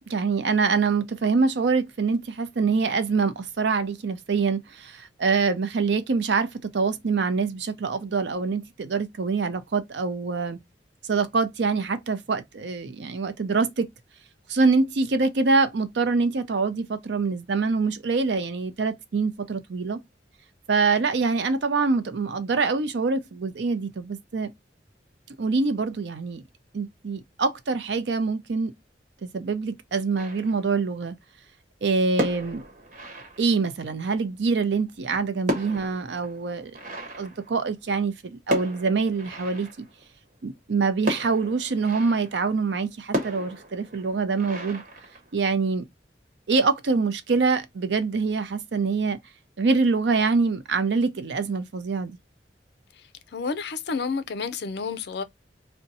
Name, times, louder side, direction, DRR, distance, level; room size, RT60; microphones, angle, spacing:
voice 1, 0.1-10.6 11.1-13.9 14.5-20.0 20.7-24.5 25.4-26.4 26.7-28.7 29.2-31.1 31.8-32.6 33.4-36.8 37.2-39.7 40.4-44.8 45.3-45.8 46.5-49.2 49.6-52.2, right 4 dB, 70° right, 0.5 m, -25 dB
sound 1, 30.2-30.9 32.0-33.9 34.9-38.1 38.5-40.1 41.1-42.5 43.1-45.6, equal, 45° right, 1.1 m, -34 dB
voice 2, 53.3-55.2, left 5 dB, 65° left, 0.4 m, -30 dB
2.7 x 2.2 x 3.9 m
head